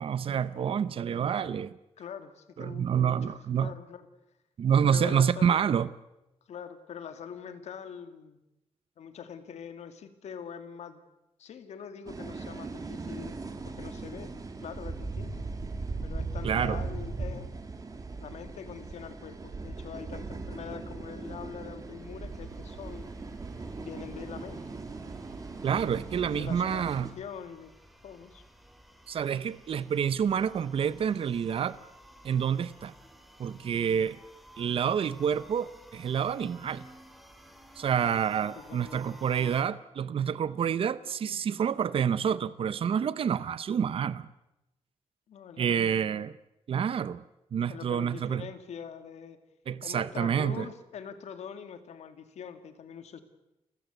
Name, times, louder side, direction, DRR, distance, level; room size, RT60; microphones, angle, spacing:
voice 1, 0.0-1.8 2.6-3.7 4.6-5.9 16.4-16.8 25.6-27.1 29.1-31.8 32.2-32.9 33.4-34.2 34.6-36.8 37.8-44.3 45.6-46.3 46.7-47.2 47.5-48.5 49.7-50.7, right 8 dB, 55° right, 0.7 m, -28 dB
voice 2, 2.0-4.1 4.9-5.6 6.5-8.4 9.0-11.0 11.4-13.4 13.7-14.3 14.6-15.4 16.0-17.5 18.2-23.1 23.8-24.6 26.1-26.8 27.2-27.7 28.0-28.4 38.6-39.0 45.3-46.0 47.7-49.4 49.8-53.2, left 7 dB, 80° left, 2.2 m, -43 dB
sound 1, 12.1-27.1, right 3 dB, 30° right, 2.7 m, -39 dB
sound 2, 20.9-39.6, equal, ahead, 2.7 m, -55 dB
29.5 x 16.0 x 8.1 m
wide cardioid pair, 135°, 11 cm